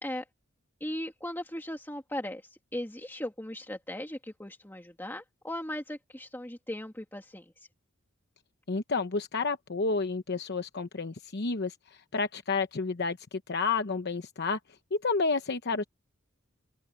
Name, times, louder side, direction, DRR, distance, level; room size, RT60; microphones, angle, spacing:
voice 1, 0.8-7.7, left 1 dB, 10° left, 2.2 m, -38 dB
voice 2, 8.7-11.7 12.1-14.6 14.9-15.8, left 4 dB, 55° left, 0.9 m, -30 dB
open air
head